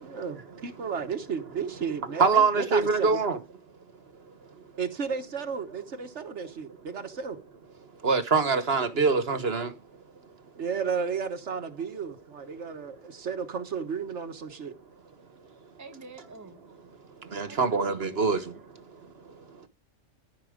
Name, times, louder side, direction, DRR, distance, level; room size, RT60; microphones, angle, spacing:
voice 1, 0.0-3.2 4.8-7.4 10.6-14.7, right 6 dB, 75° right, 1.5 m, -33 dB
voice 2, 2.2-3.4 8.0-9.7 17.3-18.4, right 4 dB, 60° right, 1.6 m, -24 dB
voice 3, 15.8-16.6 17.4-17.8 18.1-18.4, right 3 dB, 15° right, 1.1 m, -47 dB
14.0 x 6.1 x 5.1 m
omnidirectional pair, 1.2 m